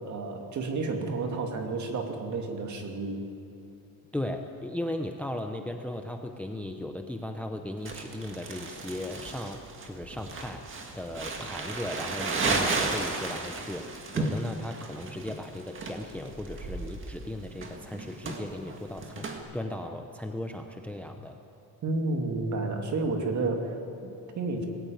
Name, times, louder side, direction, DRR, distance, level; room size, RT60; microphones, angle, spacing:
voice 1, 0.0-3.2 21.8-24.7, right 3 dB, 45° right, 3 dB, 2.5 m, -31 dB
voice 2, 4.1-21.4, left 1 dB, 5° left, 5 dB, 0.6 m, -37 dB
Crumpling crinkling, 7.9-19.4, right 3 dB, 30° right, 1.9 m, -34 dB
20.0 x 14.0 x 9.3 m, 2.6 s
cardioid pair, 175°, 39 cm